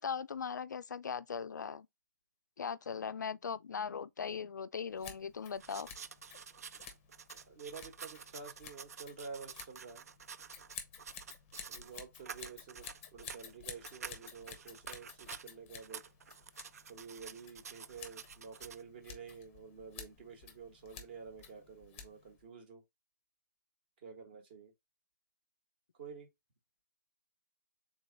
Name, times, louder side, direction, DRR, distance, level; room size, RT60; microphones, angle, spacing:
voice 1, 0.0-1.9 2.6-5.9, left 6 dB, 75° left, 0.3 m, -39 dB
Scissors, 4.9-22.4, left 7 dB, 15° left, 0.7 m, -53 dB
sound 1, 5.6-12.0 12.2-15.5 15.8-18.8, right 7 dB, 55° right, 0.4 m, -49 dB
voice 2, 7.5-10.1 11.7-16.0 16.9-22.8 24.0-24.7 26.0-26.3, right 5 dB, 35° right, 1.2 m, -50 dB
3.7 x 3.1 x 3.8 m
hypercardioid pair, 160°, 10 cm